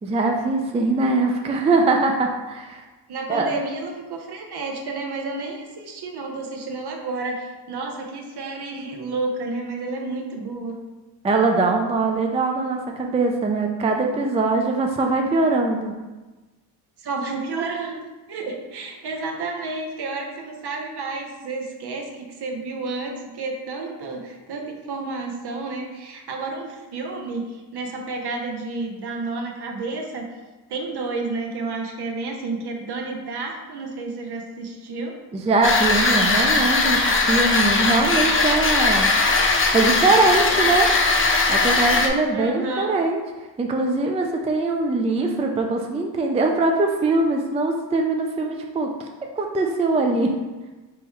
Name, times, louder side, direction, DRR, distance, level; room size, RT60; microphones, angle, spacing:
voice 1, 0.0-2.8 3.3-3.5 11.2-15.9 35.3-39.1 39.7-40.9 41.5-43.2 43.6-48.9 49.4-50.3, right 3 dB, 15° right, 2 dB, 0.3 m, -22 dB
voice 2, 3.1-10.8 17.0-30.3 30.7-35.2 42.3-43.0, right 3 dB, 55° right, 2 dB, 0.9 m, -31 dB
sound 1, 35.6-42.1, left 3 dB, 25° left, 0.6 m, -19 dB
3.6 x 3.0 x 4.5 m, 1.2 s
cardioid pair, 95°, 46 cm